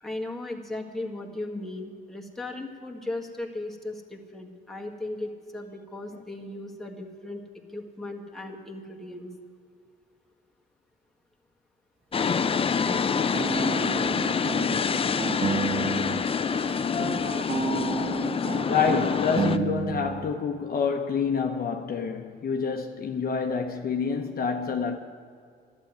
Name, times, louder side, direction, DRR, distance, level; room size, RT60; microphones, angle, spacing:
voice 1, 0.0-7.4 7.7-9.3, left 2 dB, ahead, 1.7 m, -37 dB
sound 1, 12.1-19.6, left 6 dB, 30° left, 0.5 m, -26 dB
sound 2, 12.4-16.3 16.5-20.3, right 6 dB, 30° right, 0.5 m, -32 dB
voice 2, 18.6-25.0, left 6 dB, 50° left, 0.9 m, -27 dB
11.5 x 8.1 x 9.5 m
cardioid pair, 90°, 20 cm